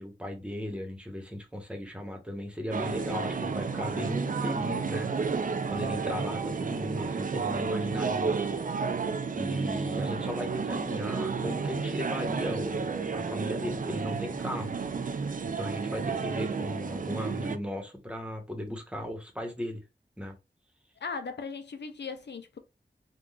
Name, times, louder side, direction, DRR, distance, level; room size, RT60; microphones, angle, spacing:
voice 1, 0.0-5.4 5.7-8.3 9.3-14.8 15.4-19.8 20.2-20.3, left 1 dB, 5° right, 1.0 m, -36 dB
sound 1, 2.7-17.6, right 5 dB, 50° right, 0.4 m, -31 dB
voice 2, 21.0-22.6, left 5 dB, 75° left, 0.4 m, -38 dB
3.7 x 2.3 x 2.3 m
wide cardioid pair, 50°, 18 cm